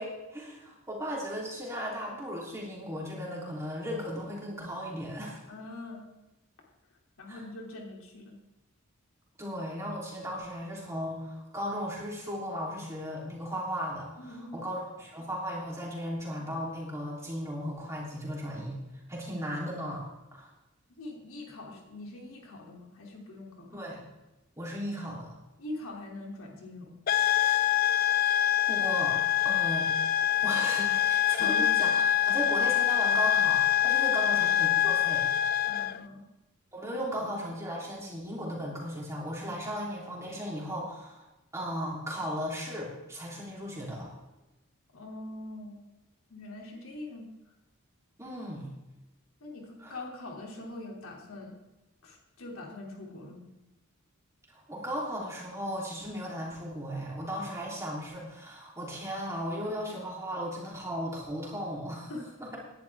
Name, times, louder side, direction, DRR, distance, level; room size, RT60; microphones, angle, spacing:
voice 1, 0.0-5.5 7.3-7.4 9.4-18.8 19.1-20.0 20.3-20.5 23.7-24.0 24.6-25.3 27.9-28.2 28.7-29.9 30.4-35.3 36.7-41.2 41.5-44.1 48.2-48.7 49.8-50.0 54.5-62.1 62.4-62.6, equal, 15° right, -4 dB, 3.3 m, -36 dB
voice 2, 5.5-6.1 7.2-8.4 14.2-14.6 21.0-23.7 25.6-27.0 31.4-31.6 34.1-34.3 35.7-36.2 36.9-37.3 44.9-45.8 46.3-47.5 49.4-51.6 52.0-53.5 62.1-62.2, left 2 dB, 75° left, 0 dB, 2.8 m, -43 dB
sound 1, 27.1-36.0, left 10 dB, 40° left, 0.3 m, -25 dB
17.5 x 11.0 x 3.5 m, 1.0 s
head